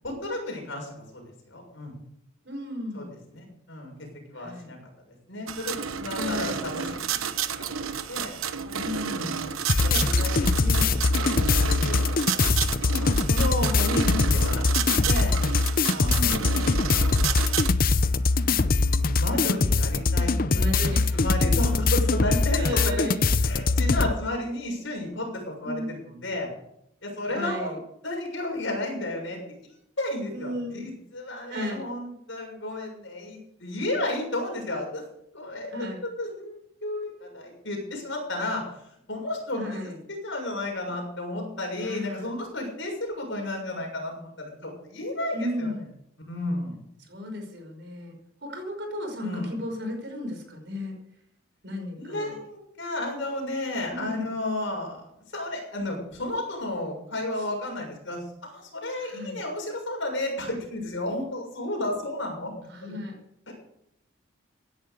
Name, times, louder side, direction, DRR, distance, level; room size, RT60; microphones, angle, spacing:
voice 1, 0.0-1.2 1.5-1.9 2.9-3.9 4.3-4.8 5.1-7.2 7.6-7.7 8.1-8.4 9.1-9.5 9.8-12.6 13.0-15.3 15.9-17.6 18.3-20.3 20.8-23.1 23.4-26.5 27.0-27.8 28.0-29.4 30.0-35.0 35.3-35.7 36.0-38.6 39.1-45.7 46.3-46.7 49.2-49.6 52.0-62.9 63.5-63.6, left 1 dB, 60° left, 1 dB, 6.8 m, -33 dB
voice 2, 2.5-3.2 4.3-4.7 6.1-6.7 8.7-9.4 11.8-12.1 16.0-16.5 19.3-19.4 20.5-21.5 22.6-23.2 25.6-25.9 27.3-27.8 30.3-30.8 31.5-31.8 35.7-36.0 39.6-40.0 41.8-42.3 45.3-45.8 47.1-48.1 48.4-51.0 51.6-52.4 53.9-54.3 57.4-57.5 59.0-59.4 62.7-63.2, left 1 dB, 55° right, 3 dB, 5.3 m, -34 dB
sound 1, 5.5-17.7, right 7 dB, 85° right, 1.1 m, -31 dB
sound 2, 9.7-24.1, left 3 dB, 45° left, 0.7 m, -23 dB
16.5 x 10.5 x 6.8 m, 0.77 s
head